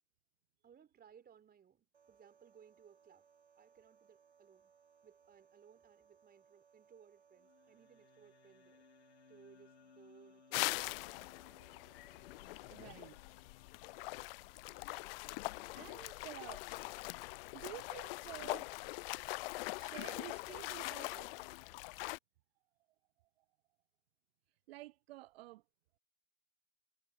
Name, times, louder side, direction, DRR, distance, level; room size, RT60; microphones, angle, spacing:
voice 1, 0.6-3.3 3.6-4.7 5.0-8.8 9.3-11.1, right 8 dB, 30° right, 3.8 m, -63 dB
sound 1, 1.9-13.1, right 7 dB, 85° right, 3.5 m, -68 dB
sound 2, 7.3-21.6, left 9 dB, 80° left, 3.2 m, -66 dB
sound 3, 10.5-22.2, left 24 dB, 60° left, 0.5 m, -42 dB
voice 2, 12.7-13.2 15.7-16.6 17.5-18.7 19.8-21.4 24.7-25.6, right 18 dB, 65° right, 0.7 m, -51 dB
hypercardioid pair, 85°, 33 cm